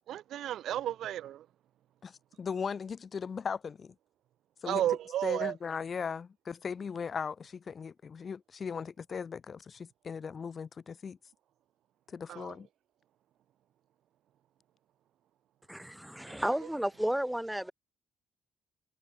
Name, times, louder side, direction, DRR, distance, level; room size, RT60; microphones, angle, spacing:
voice 1, 0.1-1.5 4.7-5.6 12.3-12.6 16.2-16.7, right 12 dB, 75° right, 0.6 m, -33 dB
voice 2, 2.0-3.9 4.6-4.8 5.2-11.2 12.1-12.7, left 6 dB, 45° left, 0.8 m, -38 dB
voice 3, 15.7-17.7, equal, 5° right, 0.8 m, -32 dB
cardioid pair, 90°, 0 cm